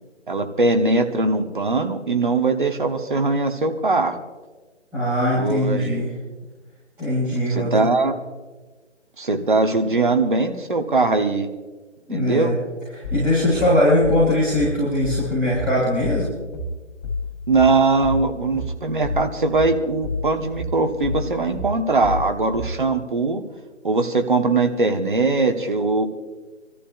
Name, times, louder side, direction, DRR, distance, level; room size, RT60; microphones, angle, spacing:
voice 1, 0.3-4.2 5.4-6.0 7.5-8.2 9.2-11.5 12.1-12.5 17.5-23.4 23.8-26.1, right 3 dB, 40° right, 5 dB, 1.2 m, -21 dB
voice 2, 4.9-6.1 7.0-7.9 12.1-12.6 13.1-16.3, left 1 dB, 5° right, -15 dB, 4.6 m, -20 dB
sound 1, 13.0-22.8, left 2 dB, 25° left, 4.5 m, -29 dB
28.5 x 14.0 x 2.4 m, 1.3 s
figure-of-eight pair, 160°, 37 cm